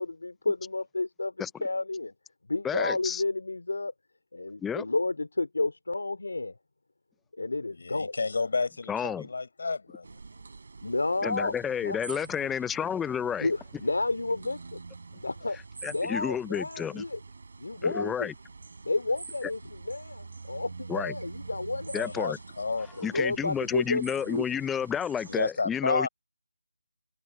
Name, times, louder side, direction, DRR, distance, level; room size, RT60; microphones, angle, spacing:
voice 1, 0.0-2.1 2.5-3.9 4.3-6.5 7.4-8.1 10.8-11.6 11.8-12.0 13.4-14.8 15.1-15.6 15.8-17.2 17.6-18.3 18.8-22.2 23.0-24.4 25.9-26.1, left 2 dB, 75° left, 3.8 m, -31 dB
voice 2, 2.6-3.2 4.6-4.9 8.9-9.3 11.2-13.5 15.8-17.0 17.8-18.3 19.4-19.5 20.9-21.1 21.9-22.4 23.0-26.1, left 8 dB, 5° left, 0.7 m, -31 dB
voice 3, 7.7-10.2 21.9-23.1 25.3-26.1, left 4 dB, 55° left, 6.9 m, -31 dB
sound 1, 10.0-25.5, right 4 dB, 55° right, 5.9 m, -46 dB
figure-of-eight pair, 165°, 0 cm